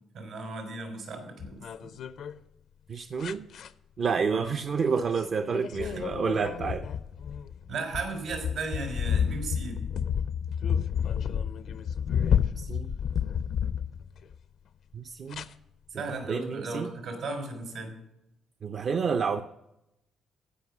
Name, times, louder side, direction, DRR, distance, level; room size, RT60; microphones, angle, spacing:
voice 1, 0.1-2.0 4.3-4.5 5.8-6.1 7.7-9.8 15.9-18.0, right 3 dB, 80° right, 3 dB, 3.8 m, -36 dB
sound 1, 1.4-2.3 3.2-3.7 5.0-5.2 5.5-14.3 15.3-15.5, left 8 dB, 70° left, 0.5 m, -30 dB
voice 2, 2.9-3.5 4.0-6.9 12.6-12.9 14.9-15.5 16.1-16.9 18.6-19.4, right 5 dB, 50° right, 8 dB, 0.5 m, -29 dB
15.0 x 5.3 x 6.1 m, 0.89 s
cardioid pair, 90°, 0 cm